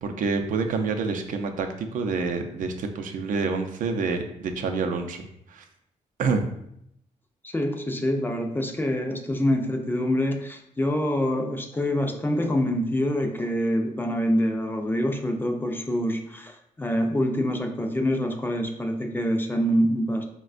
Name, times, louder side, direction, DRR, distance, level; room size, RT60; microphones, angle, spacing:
voice 1, 0.0-5.2 5.5-5.6 6.2-6.4, right 4 dB, 75° right, 5 dB, 0.4 m, -27 dB
voice 2, 7.4-20.2, equal, 15° left, 4 dB, 0.4 m, -26 dB
4.1 x 2.2 x 2.4 m, 0.74 s
cardioid pair, 100°, 13 cm